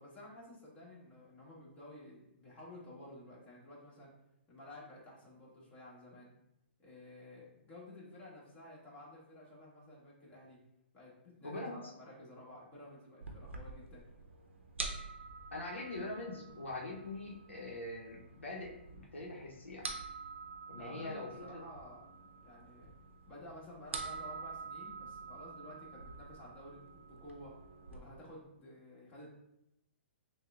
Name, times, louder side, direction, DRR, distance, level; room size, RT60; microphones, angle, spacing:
voice 1, 0.0-4.1 4.5-6.3 6.8-10.6 10.9-14.1 20.8-22.9 23.3-27.6 27.9-29.3, left 1 dB, 25° left, -5 dB, 1.4 m, -53 dB
voice 2, 11.4-11.8 15.5-19.9 20.7-21.6, left 2 dB, 85° left, -2 dB, 0.7 m, -43 dB
sound 1, 13.2-28.0, right 4 dB, 80° right, 0.6 m, -47 dB
6.3 x 2.2 x 2.4 m, 0.82 s
hypercardioid pair, 125°, 6 cm